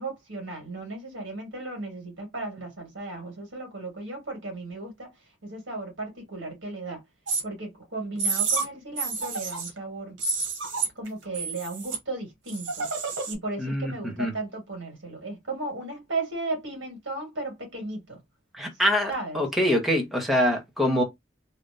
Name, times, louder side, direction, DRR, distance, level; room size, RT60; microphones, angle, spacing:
voice 1, 0.0-5.1 5.4-7.0 7.4-10.2 11.0-12.9 13.3-18.2 19.1-19.4, right 2 dB, 70° right, 1.8 m, -35 dB
sound 1, 7.3-7.4 8.2-8.7 9.0-9.8 10.2-11.1 11.3-12.0 12.5-13.3, right 4 dB, 90° right, 1.1 m, -29 dB
voice 2, 13.6-14.3 18.5-21.0, equal, ahead, 0.9 m, -25 dB
3.3 x 2.5 x 2.6 m
head